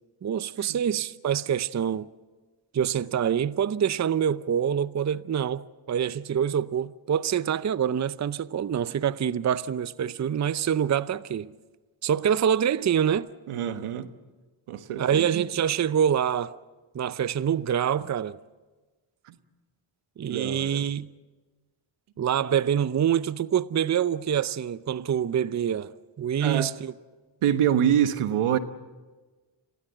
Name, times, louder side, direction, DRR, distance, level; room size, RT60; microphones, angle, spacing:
voice 1, 0.2-2.1 2.7-11.5 12.0-13.3 15.0-16.6 16.9-18.4 20.2-21.1 22.2-26.9, right 8 dB, 35° right, 0.6 m, -26 dB
voice 2, 13.5-14.1 14.7-15.4 19.2-19.4 20.3-20.8 26.4-26.7 27.4-28.6, right 9 dB, 80° right, 1.4 m, -26 dB
27.5 x 17.0 x 7.9 m
cardioid pair, 60°, 49 cm